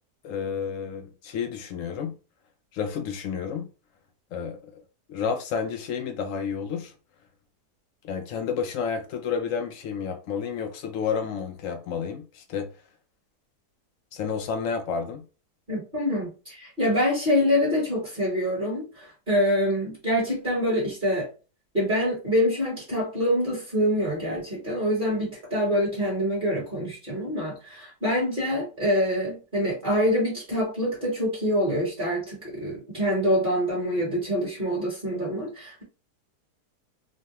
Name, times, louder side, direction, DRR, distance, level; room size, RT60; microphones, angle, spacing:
voice 1, 0.2-2.2 2.7-3.7 4.3-4.6 5.1-6.9 8.0-12.7 14.1-15.3, left 6 dB, 70° left, 0.7 m, -30 dB
voice 2, 15.7-21.3 21.7-35.8, equal, 35° right, 1.2 m, -25 dB
3.0 x 2.2 x 2.9 m
omnidirectional pair, 1.8 m